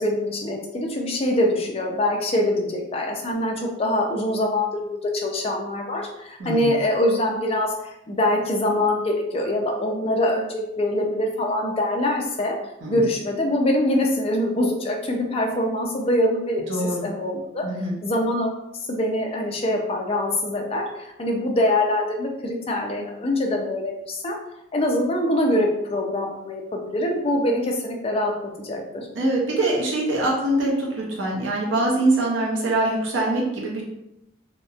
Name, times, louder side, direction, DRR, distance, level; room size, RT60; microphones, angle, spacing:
voice 1, 0.0-7.7 8.1-12.6 12.9-17.6 18.0-18.6 18.9-24.4 24.7-29.1, left 1 dB, 30° left, 1 dB, 0.4 m, -24 dB
voice 2, 6.4-6.7 12.8-13.0 16.7-17.1 17.6-18.0 29.1-33.8, right 2 dB, 80° right, -3 dB, 0.6 m, -23 dB
2.8 x 2.1 x 2.3 m, 0.85 s
head